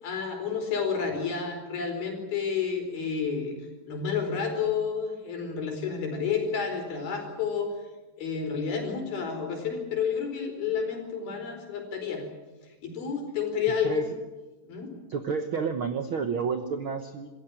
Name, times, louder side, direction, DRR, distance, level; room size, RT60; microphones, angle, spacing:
voice 1, 0.0-3.6 3.9-7.7 8.2-12.2 12.8-14.1 14.6-14.9, left 6 dB, 85° left, 4 dB, 6.3 m, -30 dB
voice 2, 15.1-17.3, right 5 dB, 80° right, 8 dB, 1.1 m, -30 dB
27.0 x 15.0 x 9.9 m, 1.2 s
omnidirectional pair, 4.2 m